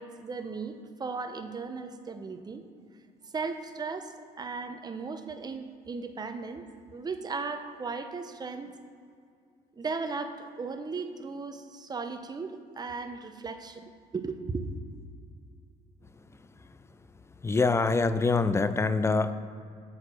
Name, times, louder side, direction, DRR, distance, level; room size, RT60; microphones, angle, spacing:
voice 1, 0.0-2.6 3.2-6.6 6.9-8.7 9.8-14.7, right 4 dB, 25° right, 7 dB, 0.7 m, -36 dB
voice 2, 17.4-19.3, left 3 dB, 15° left, 12 dB, 0.4 m, -24 dB
8.1 x 4.9 x 6.2 m, 2.2 s
cardioid pair, 110°, 17 cm